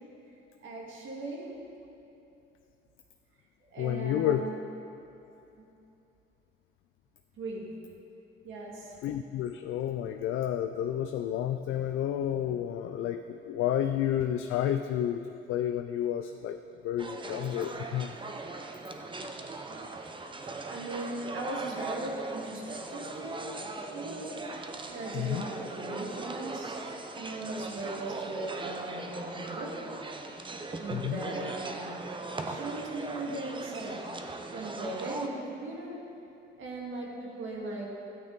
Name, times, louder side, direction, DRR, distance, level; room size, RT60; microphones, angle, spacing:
voice 1, 0.6-1.6 3.7-4.6 5.6-5.7 7.4-7.7 8.4-8.9 20.4-23.6 23.9-24.5 24.9-26.8 27.1-29.8 30.8-31.9 32.4-34.1 34.5-36.0 36.6-37.9, right 2 dB, 80° right, -2 dB, 2.1 m, -38 dB
voice 2, 3.8-4.4 9.0-15.2 15.5-16.6 16.8-18.2 25.1-25.5 30.9-31.2, left 10 dB, 85° left, 7 dB, 0.4 m, -30 dB
sound 1, 17.0-35.3, right 3 dB, 25° right, 0.8 m, -39 dB
13.0 x 9.0 x 4.0 m, 2.8 s
cardioid pair, 90°, 20 cm